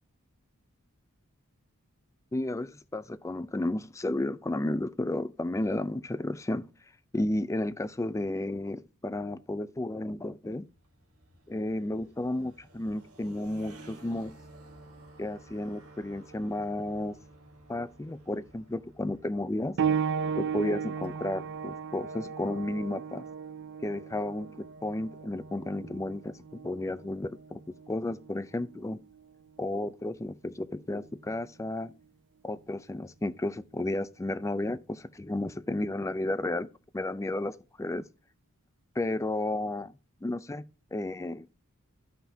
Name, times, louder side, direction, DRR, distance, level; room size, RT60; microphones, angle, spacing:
voice 1, 2.3-6.7 7.1-10.6 11.5-14.3 15.2-17.2 17.7-19.8 20.4-23.2 23.8-27.6 27.9-29.0 29.6-31.9 32.4-36.7 36.9-38.0 39.0-39.9 40.2-40.6 40.9-41.5, left 1 dB, 15° left, 0.4 m, -32 dB
sound 1, 10.4-22.0, right 2 dB, 80° right, 1.5 m, -54 dB
sound 2, 19.8-30.0 31.0-31.1 31.8-31.9, right 7 dB, 55° right, 0.4 m, -35 dB
12.5 x 5.7 x 2.8 m
head